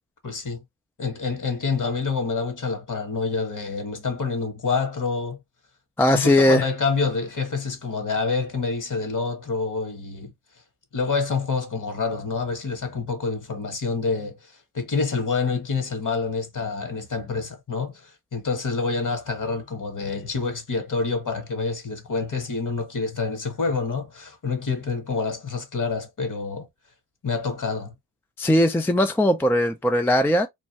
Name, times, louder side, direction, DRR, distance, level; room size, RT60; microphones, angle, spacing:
voice 1, 0.2-0.6 1.0-5.4 6.1-10.3 10.9-26.7 27.2-27.9, left 4 dB, 40° left, 1.3 m, -27 dB
voice 2, 6.0-6.6 28.4-30.5, left 1 dB, 5° left, 0.3 m, -19 dB
3.2 x 2.2 x 2.8 m
cardioid pair, 65°, 46 cm